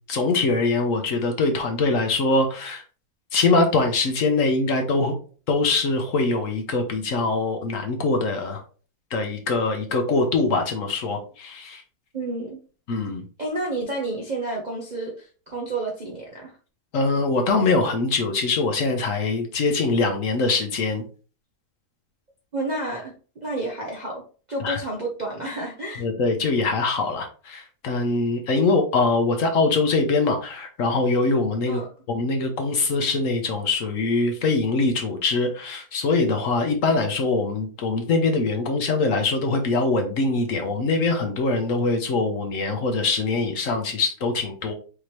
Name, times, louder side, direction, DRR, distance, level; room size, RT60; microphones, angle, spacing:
voice 1, 0.1-2.8 3.3-5.1 5.5-8.6 9.1-11.8 12.9-13.2 16.9-21.0 24.6-24.8 26.0-31.8 32.1-44.7, left 3 dB, 60° left, 4 dB, 1.1 m, -23 dB
voice 2, 12.1-12.6 13.4-16.5 22.5-23.1 23.4-24.2 24.5-26.0 31.7-31.9, right 2 dB, 45° right, -2 dB, 0.6 m, -30 dB
5.0 x 2.9 x 3.1 m, 0.38 s
omnidirectional pair, 1.7 m